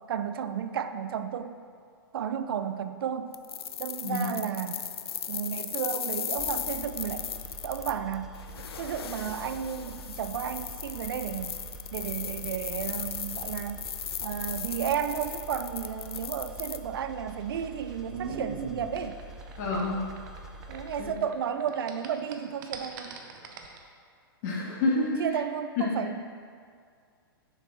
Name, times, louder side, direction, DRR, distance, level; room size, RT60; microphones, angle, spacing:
voice 1, 0.1-1.6 2.1-3.4 3.8-4.9 5.3-7.3 7.6-8.3 8.8-11.6 11.9-13.9 14.2-19.2 20.7-23.2 25.2-26.2, right 8 dB, 70° right, 10 dB, 0.4 m, -33 dB
sound 1, 3.3-16.8, left 8 dB, 85° left, 0.4 m, -37 dB
sound 2, 6.4-21.1, right 1 dB, 5° right, 0.5 m, -45 dB
sound 3, 17.0-21.3 21.6-23.8, right 5 dB, 55° right, 0.8 m, -40 dB
voice 2, 19.6-20.0 21.0-21.1 24.4-25.2 25.8-25.9, left 3 dB, 50° left, -3 dB, 1.7 m, -28 dB
6.8 x 4.8 x 4.4 m, 2.2 s
hypercardioid pair, 115°, 13 cm